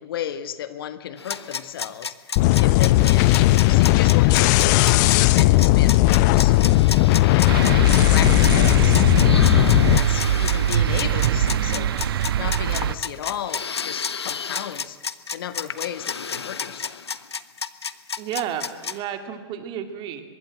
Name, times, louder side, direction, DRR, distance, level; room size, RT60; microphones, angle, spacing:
voice 1, 0.0-2.3 2.6-3.3 3.7-6.6 7.2-11.9 12.4-15.0 15.3-17.0, left 10 dB, 60° left, 12 dB, 1.5 m, -34 dB
sound 1, 1.2-19.0, left 6 dB, 85° left, 1.1 m, -31 dB
sound 2, 2.4-10.0, left 18 dB, 45° left, 0.7 m, -16 dB
sound 3, 7.5-12.9, right 10 dB, 65° right, 1.2 m, -23 dB
voice 2, 18.2-20.2, right 9 dB, 35° right, 7 dB, 2.9 m, -31 dB
24.5 x 22.0 x 7.6 m, 1.5 s
hypercardioid pair, 110°, 13 cm